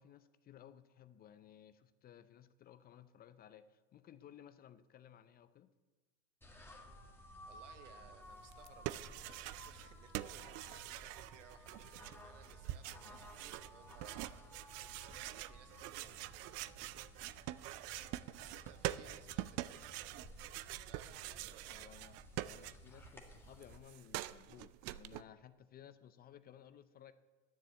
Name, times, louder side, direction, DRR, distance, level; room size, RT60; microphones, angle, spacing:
voice 1, 0.0-5.7 21.7-27.1, left 10 dB, 25° left, 14 dB, 0.5 m, -58 dB
sound 1, 6.4-23.8, equal, 5° left, 1.7 m, -57 dB
voice 2, 7.5-14.4 15.3-16.7 17.7-20.4 20.8-22.0, right 9 dB, 75° right, 10 dB, 1.2 m, -62 dB
sound 2, 8.5-9.9 10.1-23.1 23.4-25.2, right 15 dB, 40° right, 0.5 m, -45 dB
10.5 x 6.9 x 9.0 m, 1.2 s
hypercardioid pair, 95°, 37 cm